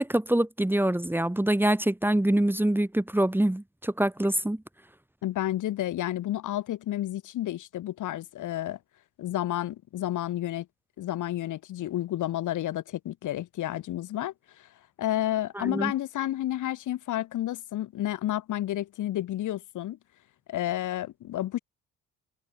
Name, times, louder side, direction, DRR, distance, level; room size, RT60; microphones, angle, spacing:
voice 1, 0.0-4.6 15.6-15.9, right 1 dB, 5° right, 2.3 m, -25 dB
voice 2, 5.2-8.8 9.2-10.7 11.0-14.7 15.0-20.0 20.5-21.6, left 13 dB, 80° left, 6.8 m, -31 dB
cardioid pair, 90°, 30 cm